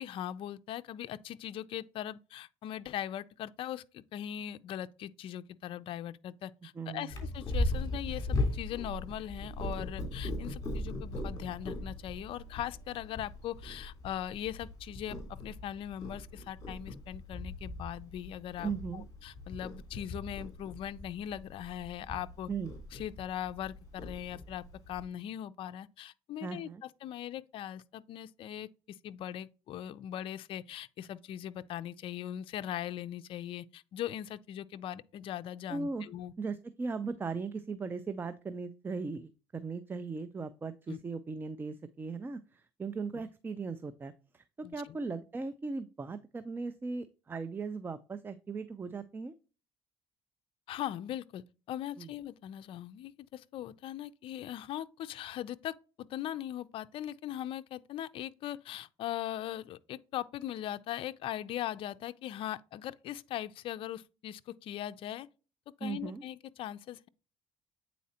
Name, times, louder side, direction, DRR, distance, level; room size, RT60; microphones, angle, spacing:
voice 1, 0.0-22.5 22.9-36.3 40.9-41.0 43.1-43.2 44.6-45.0 50.7-65.3 65.8-67.1, left 11 dB, 60° left, 0.4 m, -40 dB
voice 2, 6.8-7.2 18.6-19.0 22.5-22.7 26.4-26.8 35.7-36.0 36.4-49.3 52.0-52.1 65.8-66.2, right 4 dB, 20° right, 0.4 m, -38 dB
Purr, 7.1-25.0, left 2 dB, 35° left, 3.1 m, -39 dB
8.4 x 4.1 x 2.8 m
cardioid pair, 100°, 10 cm